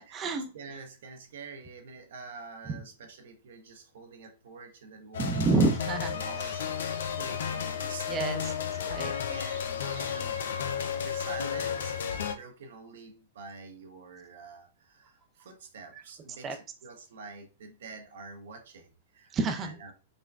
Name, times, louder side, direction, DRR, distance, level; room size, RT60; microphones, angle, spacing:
voice 1, 0.0-0.5 2.7-2.8 5.2-6.2 8.1-8.5 8.9-9.1 16.4-16.5 19.3-19.8, right 3 dB, 25° right, 0.5 m, -28 dB
voice 2, 0.5-5.5 6.1-6.6 7.1-8.1 8.8-10.4 10.8-19.9, right 4 dB, 60° right, 0.7 m, -47 dB
sound 1, 5.1-12.3, left 7 dB, 65° left, 0.4 m, -33 dB
4.9 x 2.2 x 2.2 m
figure-of-eight pair, 105°, 0 cm